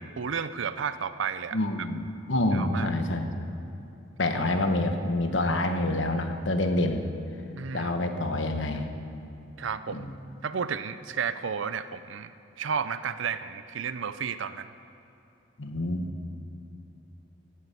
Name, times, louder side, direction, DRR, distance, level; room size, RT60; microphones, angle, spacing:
voice 1, 0.2-1.9 2.5-2.9 7.6-7.9 9.6-10.1 10.4-12.3 12.6-14.7, right 6 dB, 65° right, 12 dB, 0.5 m, -32 dB
voice 2, 1.5-2.0 2.3-3.5 4.2-7.0 7.7-8.9 9.9-10.1 15.6-16.1, left 1 dB, 65° left, 6 dB, 1.2 m, -27 dB
14.0 x 11.0 x 8.3 m, 2.9 s
head